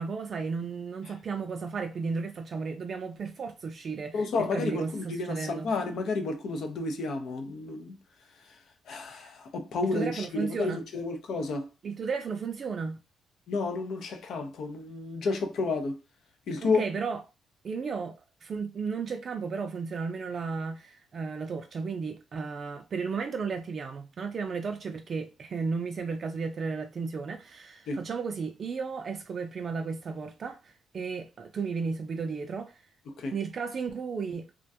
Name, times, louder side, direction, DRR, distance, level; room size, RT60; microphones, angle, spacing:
voice 1, 0.0-5.7 9.1-9.3 9.9-10.8 11.8-13.0 16.6-17.2 17.6-32.8 33.3-34.5, right 5 dB, 50° right, 0.3 m, -34 dB
voice 2, 4.1-7.9 8.4-8.6 8.9-11.7 13.5-16.0 16.5-16.8 27.9-28.0 33.1-33.4, left 3 dB, 70° left, 0.5 m, -31 dB
2.4 x 2.2 x 2.6 m
cardioid pair, 90°, 0 cm